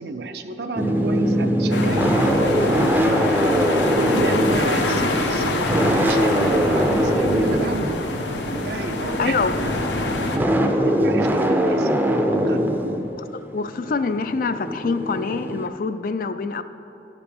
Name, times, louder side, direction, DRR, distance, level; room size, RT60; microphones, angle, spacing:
voice 1, 0.0-8.0 8.5-12.7, right 3 dB, 65° right, 8 dB, 0.5 m, -32 dB
sound 1, 0.8-15.7, equal, 10° right, 0.5 m, -22 dB
sound 2, 1.7-10.4, left 2 dB, 85° left, 0.8 m, -25 dB
voice 2, 9.2-9.6 13.3-16.6, left 4 dB, 50° left, 12 dB, 0.3 m, -25 dB
11.5 x 5.0 x 5.1 m, 2.9 s
head